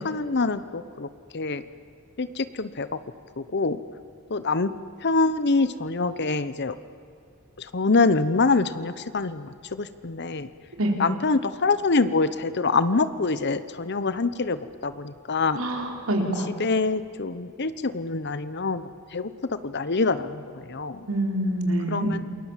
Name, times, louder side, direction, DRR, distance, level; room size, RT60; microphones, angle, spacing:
voice 1, 0.0-1.1 1.3-1.6 2.2-2.9 3.4-3.8 4.3-4.7 5.0-6.7 7.6-10.5 11.0-15.6 16.6-18.8 19.1-21.1 21.9-22.2, left 3 dB, 55° left, 13 dB, 0.9 m, -25 dB
voice 2, 15.6-16.5 21.1-22.2, right 1 dB, 85° right, 2 dB, 4.5 m, -26 dB
28.5 x 21.5 x 7.4 m, 2.5 s
head